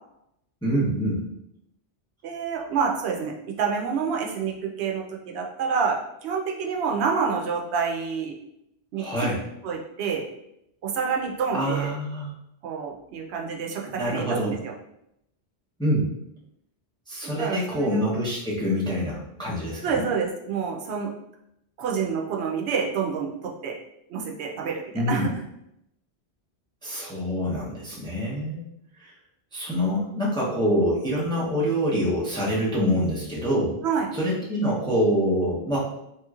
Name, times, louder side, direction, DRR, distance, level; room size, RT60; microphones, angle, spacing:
voice 1, 0.6-1.3 8.9-9.4 11.5-12.3 14.0-14.5 15.8-16.1 17.1-20.0 24.9-25.3 26.8-28.7 29.0-29.1 29.5-33.8 34.1-35.8, equal, 5° left, -6 dB, 0.6 m, -25 dB
voice 2, 2.2-8.3 8.9-9.3 9.6-10.2 10.8-11.9 12.6-14.7 17.4-18.1 19.8-21.1 21.8-23.8 24.1-25.3 33.8-34.1, right 6 dB, 80° right, 0 dB, 0.8 m, -28 dB
3.1 x 2.9 x 2.3 m, 0.80 s
omnidirectional pair, 1.1 m